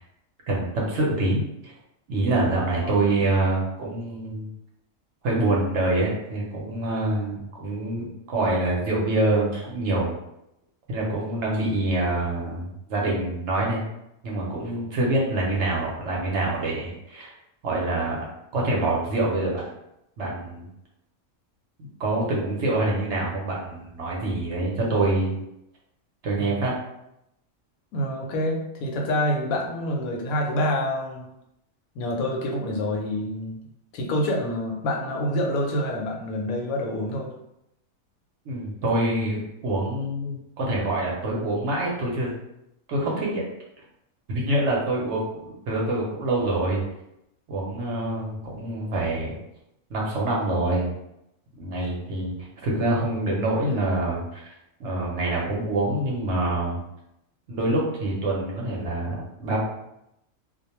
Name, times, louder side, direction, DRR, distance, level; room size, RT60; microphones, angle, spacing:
voice 1, 0.5-1.7 2.1-4.5 5.2-10.1 10.9-13.8 14.2-17.3 17.6-18.2 18.5-19.6 20.2-20.7 22.0-25.3 26.2-26.7 38.5-42.3 42.9-43.4 44.3-46.8 47.5-49.3 49.9-50.9 51.6-52.3 52.6-54.4 54.8-56.8 57.5-59.6, right 2 dB, 60° right, -3 dB, 0.9 m, -25 dB
voice 2, 27.9-31.2 32.0-33.6 33.9-37.3, left 1 dB, 80° left, 0 dB, 1.0 m, -27 dB
2.4 x 2.2 x 2.9 m, 0.83 s
omnidirectional pair, 1.4 m